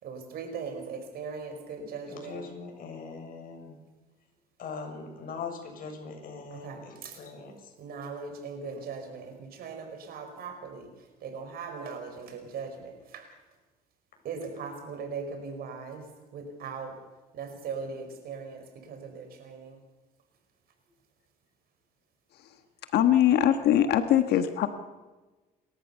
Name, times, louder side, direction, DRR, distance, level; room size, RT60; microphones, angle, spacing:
voice 1, 0.0-2.4 6.5-7.2 7.8-13.3 14.2-17.0 17.3-19.8, right 5 dB, 65° right, 7 dB, 5.1 m, -39 dB
voice 2, 2.1-3.8 4.6-7.7, left 4 dB, 55° left, 3 dB, 6.8 m, -41 dB
voice 3, 22.9-24.7, left 11 dB, 75° left, 8 dB, 1.6 m, -22 dB
29.5 x 14.0 x 6.9 m, 1.2 s
cardioid pair, 110°, 17 cm